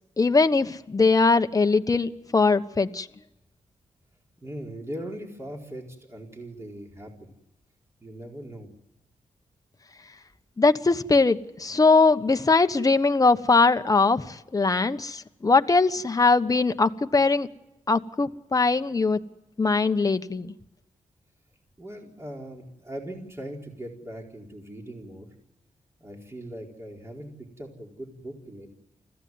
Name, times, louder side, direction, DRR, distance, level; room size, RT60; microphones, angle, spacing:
voice 1, 0.2-3.1 10.6-17.5 17.9-19.2 19.6-20.5, left 3 dB, 30° left, 8 dB, 1.2 m, -21 dB
voice 2, 4.4-7.4 8.0-8.7 21.8-25.3 26.0-27.3 27.6-28.7, right 1 dB, 20° right, 0 dB, 4.5 m, -40 dB
25.5 x 16.0 x 9.6 m, 0.99 s
cardioid pair, 75°, 13 cm